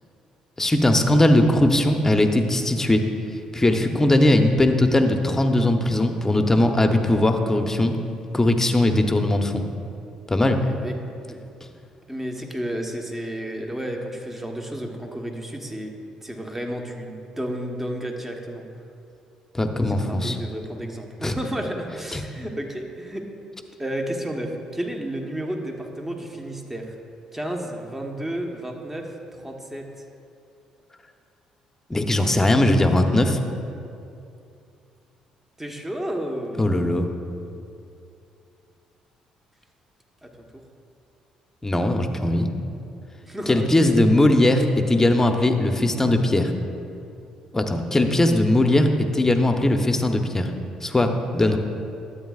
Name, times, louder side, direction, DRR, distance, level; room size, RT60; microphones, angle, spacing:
voice 1, 0.6-3.1 3.5-8.0 8.3-9.6 10.3-10.6 19.5-20.4 21.2-21.3 22.1-22.2 31.9-33.4 36.6-37.1 41.6-42.5 43.5-46.5 47.5-50.5 50.8-51.6, left 1 dB, 20° left, 5 dB, 0.9 m, -19 dB
voice 2, 10.6-11.0 11.3-11.4 12.1-15.9 16.2-18.7 19.9-23.3 23.8-26.9 27.3-29.9 35.6-36.8 40.2-40.6 43.2-43.9 51.4-51.5, right 1 dB, 10° right, 2 dB, 1.2 m, -32 dB
12.5 x 8.2 x 2.5 m, 2.6 s
hypercardioid pair, 55°, 2 cm